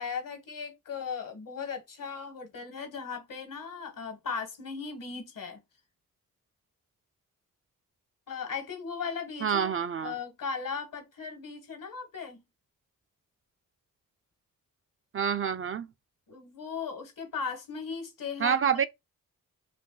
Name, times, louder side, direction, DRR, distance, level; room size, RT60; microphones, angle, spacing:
voice 1, 0.0-5.6 8.3-9.7 10.0-12.4 16.3-18.6, left 5 dB, 70° left, 1.2 m, -37 dB
voice 2, 9.4-10.1 15.1-15.9 18.4-18.9, right 7 dB, 40° right, 0.4 m, -27 dB
2.6 x 2.5 x 3.7 m
cardioid pair, 55°, 34 cm